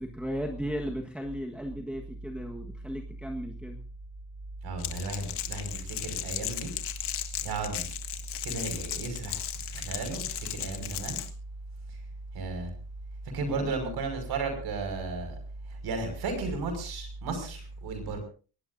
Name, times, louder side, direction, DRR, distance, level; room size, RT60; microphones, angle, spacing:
voice 1, 0.0-3.8 13.4-13.7, equal, 5° right, 0 dB, 1.5 m, -36 dB
voice 2, 4.6-6.7 7.4-7.9 8.4-11.2 12.3-12.7 13.3-15.4 15.7-18.2, right 3 dB, 70° right, 6 dB, 5.9 m, -34 dB
Crackle, 4.8-11.3, left 12 dB, 90° left, 1.7 m, -36 dB
22.5 x 19.0 x 2.7 m, 0.37 s
cardioid pair, 145°, 39 cm